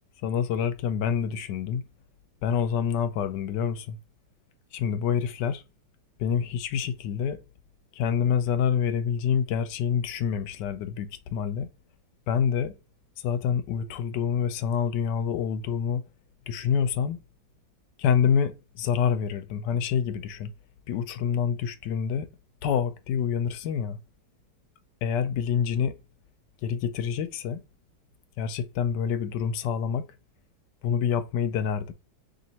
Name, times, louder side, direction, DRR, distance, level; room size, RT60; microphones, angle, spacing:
voice 1, 0.2-1.8 2.4-4.0 4.7-5.6 6.2-7.4 7.9-11.7 12.3-12.8 13.2-16.0 16.5-17.2 18.0-20.5 20.9-22.3 22.6-24.0 25.0-26.0 26.6-27.6 28.4-30.1 30.8-31.9, left 7 dB, 80° left, 1.2 m, -27 dB
3.2 x 2.9 x 4.0 m
omnidirectional pair, 1.9 m